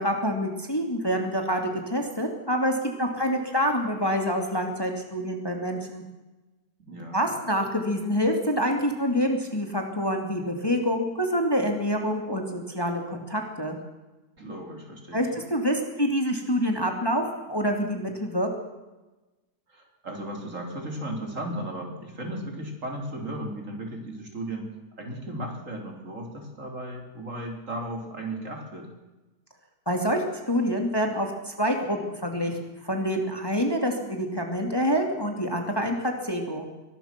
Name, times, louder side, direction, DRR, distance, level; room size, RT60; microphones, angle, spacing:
voice 1, 0.0-6.0 7.1-13.8 15.1-18.5 29.9-36.6, equal, 15° left, 3 dB, 2.7 m, -27 dB
voice 2, 6.8-7.3 14.4-15.4 19.7-24.7 25.0-28.9, right 1 dB, 45° right, 2 dB, 4.3 m, -36 dB
23.5 x 19.5 x 6.1 m, 1.1 s
omnidirectional pair, 1.8 m